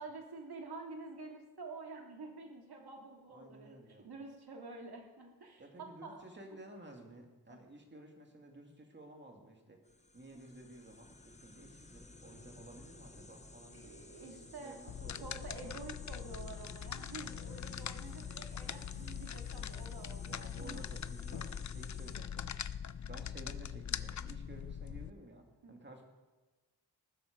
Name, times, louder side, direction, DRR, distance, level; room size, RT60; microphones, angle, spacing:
voice 1, 0.0-6.3 7.5-7.6 13.7-14.9 15.2-20.2 20.6-20.8 25.6-25.8, right 3 dB, 70° right, 1 dB, 2.7 m, -49 dB
voice 2, 3.3-4.1 5.6-9.8 10.1-14.0 14.3-15.7 17.7-17.9 20.2-22.6 23.1-26.0, right 1 dB, 25° right, 2 dB, 2.4 m, -54 dB
sound 1, 9.8-22.2, left 2 dB, 15° left, 1.0 m, -55 dB
sound 2, 14.9-25.1, left 8 dB, 50° left, 0.5 m, -42 dB
19.0 x 12.5 x 5.3 m, 1.2 s
wide cardioid pair, 165°, 40 cm